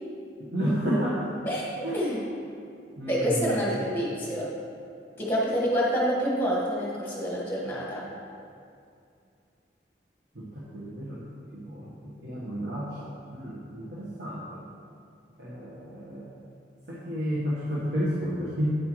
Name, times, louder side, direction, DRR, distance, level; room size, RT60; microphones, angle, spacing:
voice 1, 0.4-1.3 1.8-2.2 3.0-3.6 10.3-11.2 11.5-14.6 15.4-16.3 16.9-18.8, equal, 60° right, -8 dB, 1.3 m, -31 dB
voice 2, 3.1-4.5 5.2-8.0, equal, 10° left, -5 dB, 1.6 m, -27 dB
9.5 x 7.9 x 3.1 m, 2.4 s
head